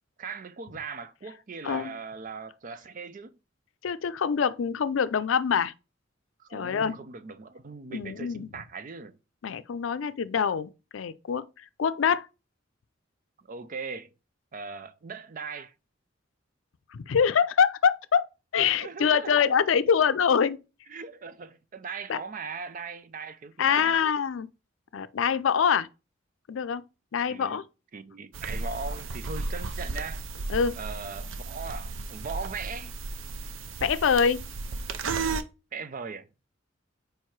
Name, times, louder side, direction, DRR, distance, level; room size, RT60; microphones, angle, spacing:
voice 1, 0.2-3.4 6.4-9.2 13.4-14.1 14.5-15.7 18.6-19.4 20.9-24.0 27.3-27.6 27.9-30.2 30.8-32.9 35.7-36.5, right 5 dB, 45° right, 0.5 m, -39 dB
voice 2, 3.8-5.7 6.5-7.0 7.9-8.5 9.4-11.5 11.8-12.2 16.9-18.2 18.5-20.6 22.1-22.2 23.6-24.5 24.9-25.9 26.5-26.8 27.1-27.6 30.5-30.7 33.8-34.5, left 7 dB, 85° left, 0.4 m, -25 dB
sound 1, 28.3-35.4, right 3 dB, 90° right, 0.6 m, -34 dB
4.6 x 4.6 x 4.5 m
head